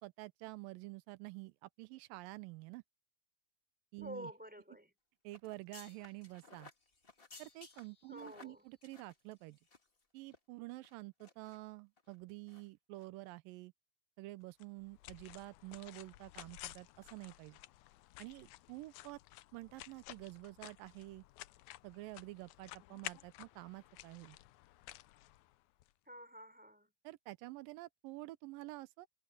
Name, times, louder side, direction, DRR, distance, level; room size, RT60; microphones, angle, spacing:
voice 1, 0.0-2.8 3.9-4.3 5.2-6.7 7.4-9.6 10.1-13.7 14.2-17.6 18.2-19.2 19.5-21.2 21.8-24.4 27.0-29.1, right 20 dB, 85° right, 2.4 m, -49 dB
voice 2, 4.0-4.9 8.1-8.7 26.1-26.9, equal, ahead, 4.2 m, -49 dB
sound 1, 5.3-10.0 10.3-10.4 10.8-11.6 12.0-12.1 12.5-12.7 12.9-13.1, left 3 dB, 30° left, 1.0 m, -59 dB
sound 2, 14.6-25.9, left 16 dB, 80° left, 1.7 m, -53 dB
omnidirectional pair, 4.0 m